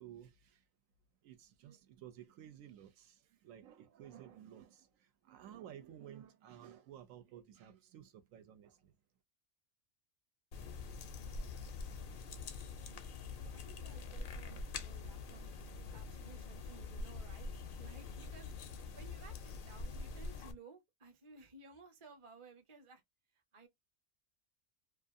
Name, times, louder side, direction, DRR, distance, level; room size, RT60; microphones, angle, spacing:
voice 1, 0.0-0.6 1.2-8.9, right 10 dB, 85° right, 1.0 m, -54 dB
sound 1, 10.5-20.5, left 4 dB, 60° left, 0.5 m, -45 dB
voice 2, 13.3-17.5 17.8-23.0 23.5-23.7, right 3 dB, 30° right, 0.6 m, -58 dB
2.4 x 2.4 x 2.5 m
omnidirectional pair, 1.4 m